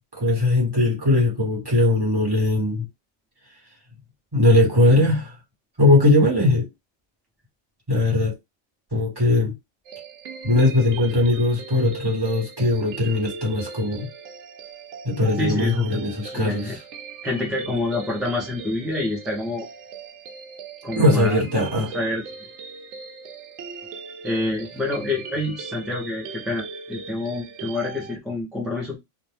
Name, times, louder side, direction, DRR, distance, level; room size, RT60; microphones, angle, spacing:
voice 1, 0.2-2.8 4.3-5.3 5.8-6.7 7.9-8.3 8.9-9.5 10.4-14.1 15.0-16.8 20.9-21.9, left 2 dB, 20° right, 1.1 m, -20 dB
sound 1, 9.8-28.2, right 4 dB, 80° right, 0.9 m, -39 dB
voice 2, 15.4-16.8 17.2-19.7 20.8-21.4 21.8-22.2 24.2-29.0, left 2 dB, ahead, 0.5 m, -27 dB
2.5 x 2.2 x 3.3 m
omnidirectional pair, 1.3 m